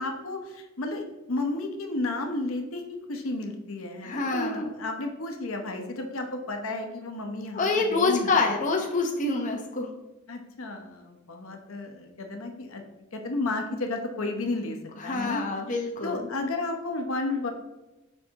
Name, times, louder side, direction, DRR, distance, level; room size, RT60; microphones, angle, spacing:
voice 1, 0.0-2.8 3.1-8.5 10.3-12.8 13.1-14.8 15.0-15.4 16.0-17.5, left 2 dB, 75° left, 4 dB, 0.9 m, -32 dB
voice 2, 4.0-4.7 7.5-9.9 15.0-16.3, left 3 dB, 40° left, 1 dB, 0.8 m, -26 dB
6.8 x 5.2 x 2.9 m, 1.0 s
head